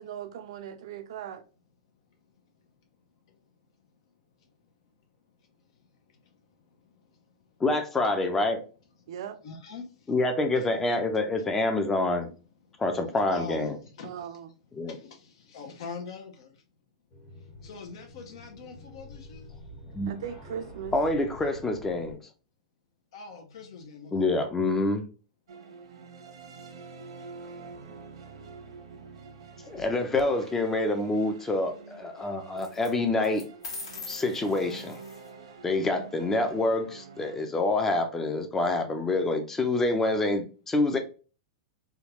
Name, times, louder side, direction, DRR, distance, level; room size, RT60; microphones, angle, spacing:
voice 1, 0.0-1.4 9.1-9.4 14.0-14.5 20.1-21.0, right 9 dB, 65° right, 0.5 m, -38 dB
voice 2, 6.8-7.2 9.4-10.1 10.5-10.7 12.7-12.8 13.3-14.3 14.8-16.6 17.6-20.0 23.1-24.2, left 4 dB, 65° left, 0.7 m, -43 dB
voice 3, 7.6-8.6 10.1-12.3 12.8-13.8 14.7-14.9 19.9-20.1 20.9-22.2 24.1-25.1 29.6-33.5 34.1-35.0 35.6-41.0, left 2 dB, 10° left, 0.5 m, -27 dB
sound 1, 17.1-22.1, left 1 dB, 40° left, 1.2 m, -47 dB
sound 2, 25.5-37.4, right 4 dB, 85° right, 1.0 m, -47 dB
sound 3, 29.7-30.2 32.6-32.9 33.2-35.3, left 4 dB, 90° left, 1.3 m, -42 dB
3.6 x 2.3 x 2.9 m
supercardioid pair, 150°, 3 cm